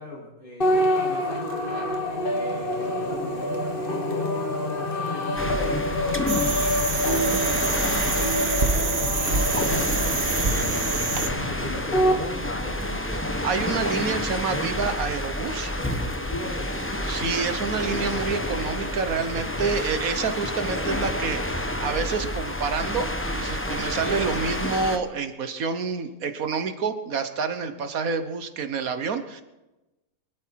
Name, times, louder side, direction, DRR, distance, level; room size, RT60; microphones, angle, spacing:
voice 1, 0.0-1.7 2.3-6.7 8.6-10.5 11.6-13.5 15.8-17.1, left 1 dB, 75° left, -4 dB, 7.1 m, -39 dB
sound 1, 0.6-12.2, left 1 dB, 40° left, 1.8 m, -27 dB
sound 2, 5.4-25.0, left 1 dB, 10° left, 1.0 m, -29 dB
sound 3, 6.3-11.3, right 4 dB, 40° right, 1.4 m, -27 dB
voice 2, 13.4-15.8 17.1-23.1 23.3-29.4, right 5 dB, 75° right, 9 dB, 1.6 m, -28 dB
24.0 x 12.5 x 4.7 m, 1.0 s
omnidirectional pair, 1.5 m